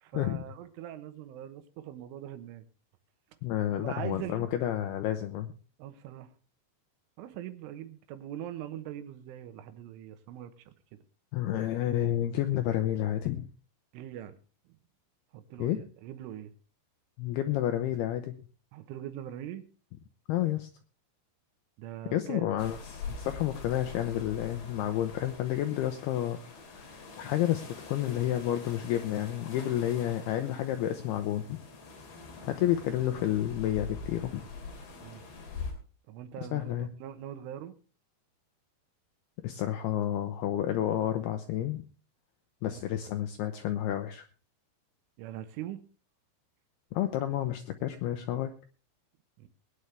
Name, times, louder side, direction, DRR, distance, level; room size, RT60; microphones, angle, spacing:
voice 1, 0.0-2.7 3.7-4.5 5.8-6.3 7.2-11.0 13.9-14.4 15.3-16.5 18.7-19.7 21.8-22.5 35.0-35.2 36.1-37.7 42.7-42.8 45.2-45.8 49.4-49.5, right 11 dB, 85° right, 10 dB, 3.6 m, -42 dB
voice 2, 3.4-5.5 11.3-13.5 15.6-15.8 17.2-18.4 20.3-20.7 22.1-31.6 32.4-34.4 36.5-36.9 39.4-41.8 42.6-44.3 46.9-48.5, left 12 dB, 90° left, 7 dB, 2.3 m, -30 dB
sound 1, 22.6-35.7, left 4 dB, 60° left, 4.8 m, -44 dB
21.5 x 9.6 x 3.3 m, 0.37 s
omnidirectional pair, 5.5 m